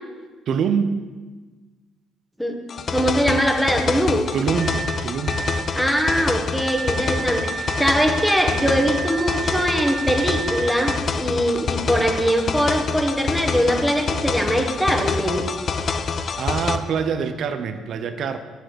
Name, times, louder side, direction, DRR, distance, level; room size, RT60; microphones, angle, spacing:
voice 1, 0.5-0.9 4.3-5.4 16.2-18.4, right 6 dB, 60° right, 9 dB, 0.7 m, -25 dB
sound 1, 2.7-16.8, left 5 dB, 50° left, 0.7 m, -26 dB
voice 2, 2.9-4.3 5.7-15.5, equal, ahead, 3 dB, 1.5 m, -22 dB
sound 2, 4.6-11.0, right 5 dB, 20° right, 0.7 m, -31 dB
7.9 x 6.3 x 6.4 m, 1.3 s
supercardioid pair, 70°, 0 cm